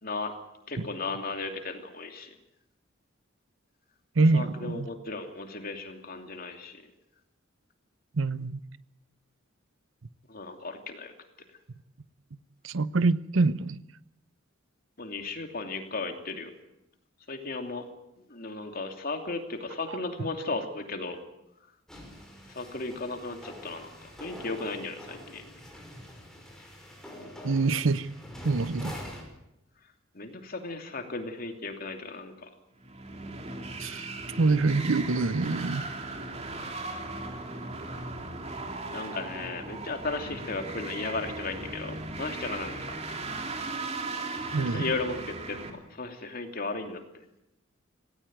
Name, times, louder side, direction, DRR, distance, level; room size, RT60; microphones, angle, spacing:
voice 1, 0.0-0.3 0.7-2.3 4.3-6.8 10.3-11.1 15.0-16.5 17.3-17.9 18.3-21.2 22.5-25.4 30.1-32.5 38.9-43.0 44.6-45.6 45.9-47.0, left 3 dB, 45° left, 2.8 m, -35 dB
voice 2, 4.2-4.9 8.1-8.6 12.6-13.8 19.9-20.0 27.4-28.1 28.4-29.0 33.8-34.1 34.4-35.8 44.5-44.9, right 3 dB, 70° right, 0.7 m, -25 dB
sound 1, 21.9-29.3, equal, 5° left, 5.3 m, -45 dB
sound 2, 32.8-45.7, right 2 dB, 30° right, 2.9 m, -37 dB
18.0 x 18.0 x 9.3 m
head